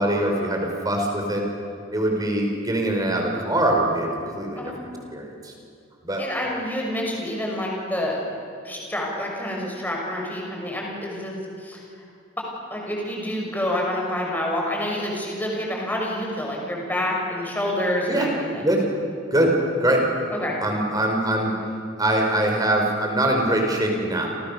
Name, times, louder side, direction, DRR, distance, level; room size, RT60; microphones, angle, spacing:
voice 1, 0.0-1.5 1.9-4.7 5.1-5.5 6.0-6.2 18.1-18.3 18.6-18.9 19.3-20.1 20.6-21.6 22.0-24.3, right 1 dB, 20° right, 1 dB, 5.0 m, -23 dB
voice 2, 6.2-8.2 8.6-11.8 12.7-18.7 20.3-20.6, left 1 dB, 10° left, -1 dB, 6.3 m, -28 dB
29.5 x 28.0 x 6.9 m, 2.4 s
head